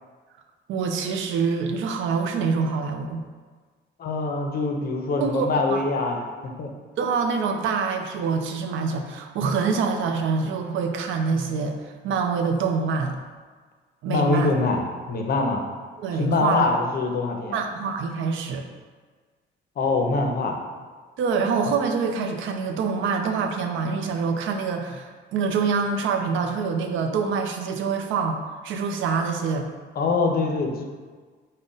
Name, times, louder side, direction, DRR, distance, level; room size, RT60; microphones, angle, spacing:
voice 1, 0.7-3.2 5.2-5.8 7.0-11.8 12.0-13.2 14.0-14.5 16.0-16.6 17.5-18.6 21.2-29.7, right 5 dB, 75° right, 4 dB, 0.4 m, -25 dB
voice 2, 4.0-6.7 14.1-14.8 15.1-15.6 16.2-17.6 19.8-20.6 30.0-30.8, left 3 dB, 50° left, 2 dB, 0.6 m, -24 dB
3.6 x 2.1 x 3.8 m, 1.5 s
cardioid pair, 90°, 20 cm